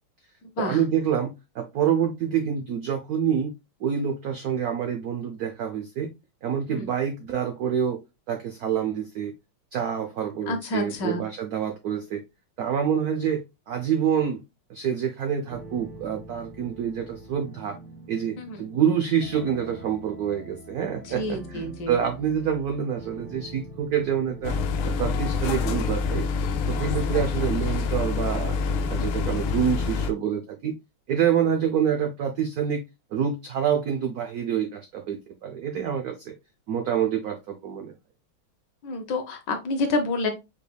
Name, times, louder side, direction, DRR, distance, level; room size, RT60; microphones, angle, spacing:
voice 1, 0.6-3.5 3.8-6.1 6.4-8.0 8.3-9.3 9.7-12.2 12.6-14.4 14.7-17.8 18.1-24.5 24.8-26.3 26.7-28.6 28.9-30.7 31.1-32.8 33.1-36.3 36.7-37.9, right 8 dB, 80° right, 4 dB, 0.8 m, -27 dB
voice 2, 10.5-11.2 18.4-18.6 21.1-21.9 38.8-40.3, left 2 dB, 65° left, 6 dB, 1.3 m, -28 dB
sound 1, 15.5-27.3, right 1 dB, 20° left, 0.9 m, -44 dB
sound 2, 24.4-30.1, left 5 dB, 85° left, 1.5 m, -26 dB
5.1 x 3.3 x 2.2 m, 0.24 s
omnidirectional pair, 2.3 m